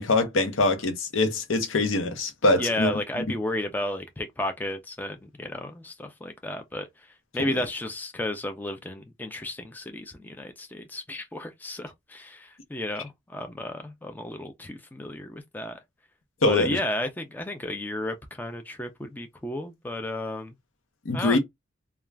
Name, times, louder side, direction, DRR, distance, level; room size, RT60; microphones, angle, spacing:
voice 1, 0.0-2.9 7.4-7.6 16.4-16.8 21.0-21.4, left 2 dB, 85° left, 0.8 m, -23 dB
voice 2, 2.6-6.9 7.3-15.8 16.5-20.5 21.1-21.4, left 1 dB, 10° left, 0.3 m, -33 dB
2.4 x 2.3 x 3.2 m
head